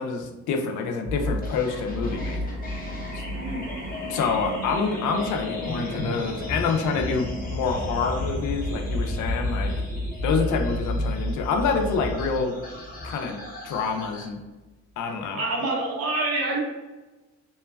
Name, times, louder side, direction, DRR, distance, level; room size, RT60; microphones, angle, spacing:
voice 1, 0.0-2.4 4.1-9.7 10.2-12.6 13.0-13.4 13.6-14.4 15.0-15.4, left 5 dB, 80° left, 4 dB, 0.5 m, -27 dB
sound 1, 1.0-13.5 13.7-13.8, equal, 75° right, 1.3 m, -32 dB
sound 2, 1.4-14.3, left 2 dB, 30° left, 0.8 m, -38 dB
voice 2, 3.3-3.6 15.2-16.6, right 2 dB, 50° right, -2 dB, 0.8 m, -27 dB
2.9 x 2.2 x 2.2 m, 1.1 s
cardioid pair, 90°, 30 cm